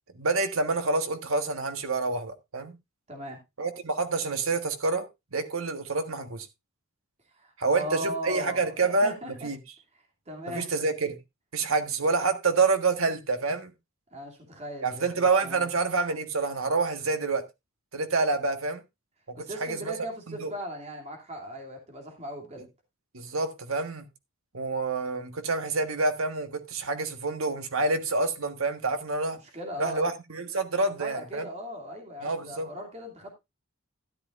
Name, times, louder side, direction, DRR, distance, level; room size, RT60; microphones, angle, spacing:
voice 1, 0.1-2.8 3.6-5.0 5.3-6.5 7.6-9.6 10.5-11.2 11.5-13.7 14.8-17.4 17.9-18.8 19.3-19.9 20.3-20.5 23.1-24.1 24.5-29.4 29.8-31.5 32.2-32.7, right 3 dB, 70° right, 1.5 m, -27 dB
voice 2, 3.1-3.4 7.3-9.5 10.3-10.7 14.1-15.7 19.3-22.7 29.5-30.1 31.0-33.3, equal, 30° right, 2.7 m, -38 dB
13.0 x 10.5 x 2.5 m
head